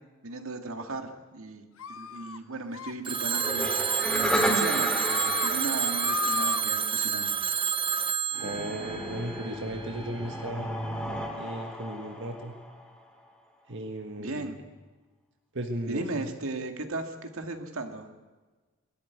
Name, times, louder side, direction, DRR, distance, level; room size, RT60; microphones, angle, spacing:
voice 1, 0.2-3.7 4.1-7.3 14.2-14.6 15.9-18.1, right 2 dB, 80° right, 5 dB, 2.1 m, -36 dB
sound 1, 1.8-2.4 2.7-2.9 3.3-3.5 3.8-4.6 4.9-5.5 5.8-6.6, left 6 dB, 80° left, 0.8 m, -35 dB
Telephone, 3.0-9.9, right 7 dB, 25° right, 0.5 m, -29 dB
sound 2, 3.3-7.0 8.3-13.0, equal, 5° left, 2.6 m, -33 dB
voice 2, 8.4-10.7 11.4-12.5 13.7-14.5 15.5-16.3, right 1 dB, 60° right, 4 dB, 1.6 m, -36 dB
21.5 x 13.0 x 9.5 m, 1.3 s
head